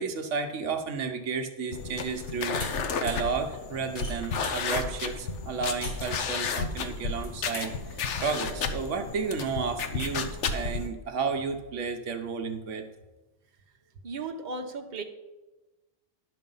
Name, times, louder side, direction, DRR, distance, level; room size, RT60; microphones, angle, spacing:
voice 1, 0.0-2.6 3.0-12.8, right 5 dB, 85° right, 6 dB, 1.2 m, -32 dB
sound 1, 1.7-10.9, left 5 dB, 80° left, 1.1 m, -32 dB
sound 2, 2.6-2.7 3.0-3.3 3.8-4.6 5.8-6.2 7.1-7.7, left 1 dB, 50° left, 2.7 m, -40 dB
voice 2, 14.0-15.0, right 3 dB, 40° right, 4 dB, 1.0 m, -35 dB
11.0 x 6.5 x 5.4 m, 1.1 s
omnidirectional pair, 1.2 m